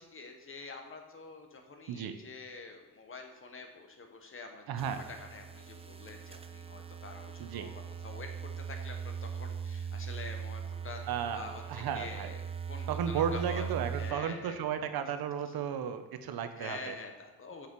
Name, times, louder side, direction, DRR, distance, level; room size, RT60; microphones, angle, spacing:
voice 1, 0.0-4.6 4.9-7.7 8.0-11.0 11.3-12.4 12.7-14.6 15.5-15.6 16.6-17.7, left 3 dB, 35° left, 4 dB, 1.1 m, -46 dB
voice 2, 4.7-5.0 7.4-7.7 11.1-12.3 12.9-16.9, right 8 dB, 75° right, 9 dB, 0.8 m, -34 dB
sound 1, 4.8-14.1, right 7 dB, 15° right, 0.4 m, -40 dB
6.3 x 5.8 x 6.1 m, 1.1 s
cardioid pair, 140°, 37 cm